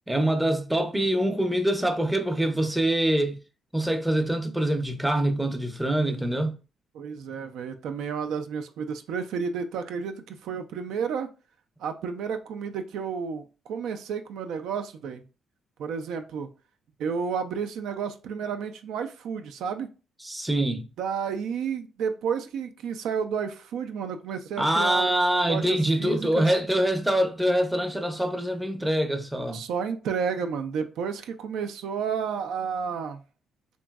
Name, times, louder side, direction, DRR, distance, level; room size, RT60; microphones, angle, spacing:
voice 1, 0.1-3.4 3.7-6.6 20.2-20.9 24.6-29.6, right 1 dB, 5° right, 0.5 m, -24 dB
voice 2, 6.9-11.3 11.8-15.2 15.8-16.5 17.0-19.9 21.0-25.1 25.4-26.5 29.5-33.2, right 6 dB, 80° right, 0.3 m, -31 dB
2.9 x 2.6 x 2.3 m
cardioid pair, 90°, 0 cm